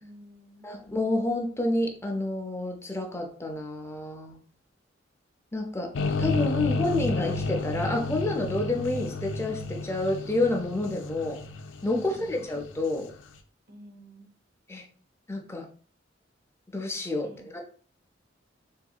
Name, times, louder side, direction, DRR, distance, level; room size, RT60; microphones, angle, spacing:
voice 1, 0.0-0.7 11.9-12.4 13.7-14.3 17.2-17.6, equal, 55° right, 4 dB, 0.7 m, -50 dB
voice 2, 0.6-4.4 5.5-5.9 6.2-11.4 11.8-13.1 14.7-14.8 15.3-15.7 16.7-17.6, left 2 dB, 15° left, 2 dB, 0.5 m, -29 dB
sound 1, 5.9-13.1, left 3 dB, 85° left, 0.4 m, -31 dB
3.7 x 2.6 x 2.3 m, 0.43 s
head